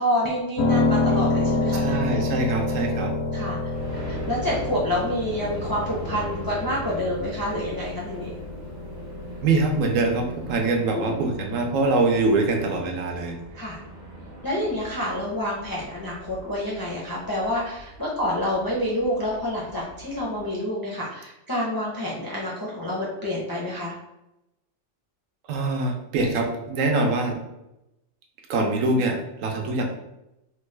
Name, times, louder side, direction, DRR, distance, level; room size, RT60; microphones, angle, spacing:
voice 1, 0.0-2.0 3.3-3.6 4.1-8.3 10.9-11.1 13.5-13.8 14.4-23.9 28.6-28.9, left 1 dB, 35° left, -5 dB, 0.3 m, -28 dB
Piano, 0.6-10.7, left 2 dB, 85° left, 1.0 m, -28 dB
voice 2, 1.7-3.1 9.4-13.3 25.5-27.4 28.5-29.8, right 3 dB, 75° right, 3 dB, 1.0 m, -24 dB
sound 1, 3.7-20.5, right 1 dB, 40° right, 0.8 m, -41 dB
3.0 x 2.2 x 3.2 m, 0.91 s
omnidirectional pair, 1.4 m